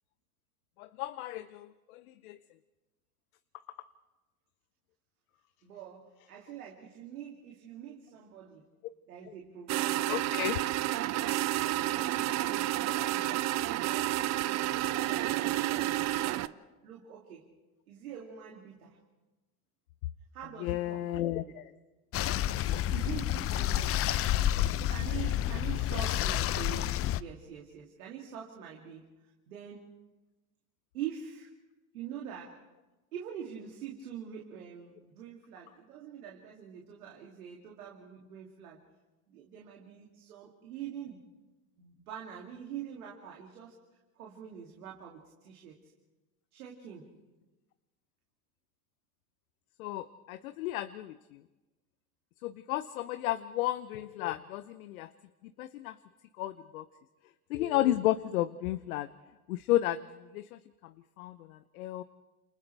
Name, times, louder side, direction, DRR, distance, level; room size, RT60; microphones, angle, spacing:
voice 1, 0.8-2.4 10.1-10.6 20.6-21.4 49.8-51.4 52.4-55.1 55.6-55.9 56.4-56.8 57.5-59.1 59.5-60.0 60.3-60.6 61.2-62.0, left 14 dB, 70° left, 12 dB, 0.9 m, -32 dB
voice 2, 5.6-8.6 9.1-10.1 11.2-17.4 17.9-19.0 20.3-21.4 22.7-24.1 24.9-29.1 29.5-29.8 30.9-31.5 31.9-32.6 33.1-38.8 39.3-41.2 41.8-43.8 44.2-45.9 46.5-47.1, right 8 dB, 75° right, -1 dB, 2.8 m, -45 dB
sound 1, 9.7-16.5, right 15 dB, 40° right, 0.6 m, -30 dB
sound 2, 22.1-27.2, left 12 dB, 30° left, 0.6 m, -29 dB
30.0 x 28.5 x 3.4 m, 1.1 s
hypercardioid pair, 80°, 44 cm